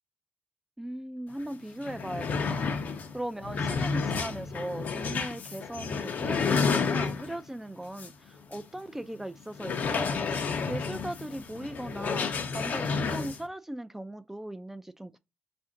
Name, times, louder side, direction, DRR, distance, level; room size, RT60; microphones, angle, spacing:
voice 1, 0.8-2.7 3.1-10.2 10.7-15.2, right 1 dB, 10° right, 0.3 m, -38 dB
sound 1, 1.4-1.5 1.8-7.5 8.0-8.1 8.5-8.6 9.6-13.4, left 5 dB, 70° left, 0.6 m, -30 dB
4.2 x 2.6 x 3.7 m
cardioid pair, 85°, 3 cm